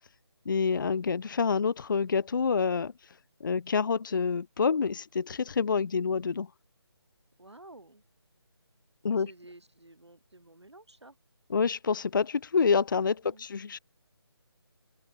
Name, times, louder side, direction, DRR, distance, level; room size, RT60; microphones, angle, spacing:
voice 1, 0.5-2.9 3.4-6.5 9.0-9.3 11.5-13.8, left 5 dB, 50° left, 0.5 m, -27 dB
voice 2, 7.4-8.0 9.1-11.2 13.2-13.5, right 2 dB, 85° right, 6.1 m, -52 dB
open air
figure-of-eight pair, 155°, 14 cm